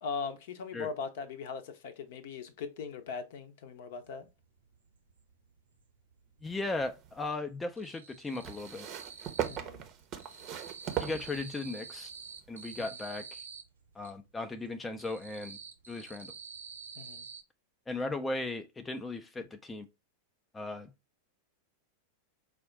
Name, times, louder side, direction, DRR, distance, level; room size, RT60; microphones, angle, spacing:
voice 1, 0.0-4.3 9.5-9.9 12.8-12.9 17.0-17.3, left 5 dB, 55° left, 0.7 m, -40 dB
sound 1, 4.2-4.3 4.6-5.8 6.1-6.8 7.1-9.7 10.0-14.1 14.6-17.4, right 6 dB, 75° right, 0.7 m, -48 dB
voice 2, 6.4-8.9 11.0-12.1 12.5-13.4 13.9-15.6 15.9-16.3 17.9-19.9 20.5-20.9, left 2 dB, 10° left, 0.5 m, -37 dB
sound 2, 6.5-7.3 8.4-11.9 12.8-12.9, right 10 dB, 35° right, 0.7 m, -38 dB
5.0 x 2.3 x 3.7 m
figure-of-eight pair, 90°, 0 cm